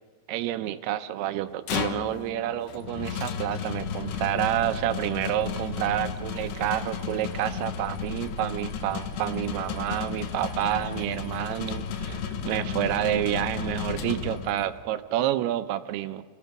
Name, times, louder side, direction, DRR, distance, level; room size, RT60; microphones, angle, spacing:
voice 1, 0.3-16.2, right 12 dB, 80° right, 11 dB, 2.7 m, -29 dB
sound 1, 1.4-14.8, left 8 dB, 85° left, 3.5 m, -34 dB
sound 2, 3.8-14.4, right 3 dB, 40° left, 5.2 m, -43 dB
29.5 x 20.5 x 6.0 m, 1.4 s
omnidirectional pair, 4.8 m